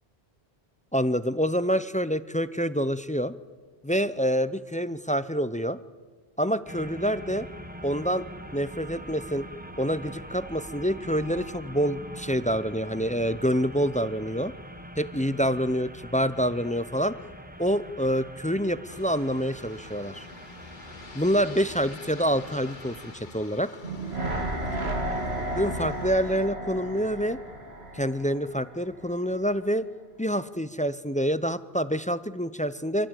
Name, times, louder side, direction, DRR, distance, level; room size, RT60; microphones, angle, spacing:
voice 1, 0.9-3.3 3.8-5.8 6.4-7.5 7.8-8.3 8.5-9.4 9.8-14.5 15.0-17.2 17.6-20.3 21.1-23.7 25.5-27.4 27.9-29.9 30.2-33.1, equal, 10° left, 14 dB, 0.4 m, -27 dB
sound 1, 6.7-23.1, equal, 10° right, 1.2 m, -43 dB
Aircraft, 18.9-26.5, left 3 dB, 50° left, 1.4 m, -47 dB
sound 2, 23.8-29.0 29.3-29.4, right 1 dB, 90° right, 2.8 m, -33 dB
25.5 x 16.0 x 9.1 m, 1.4 s
omnidirectional pair, 1.0 m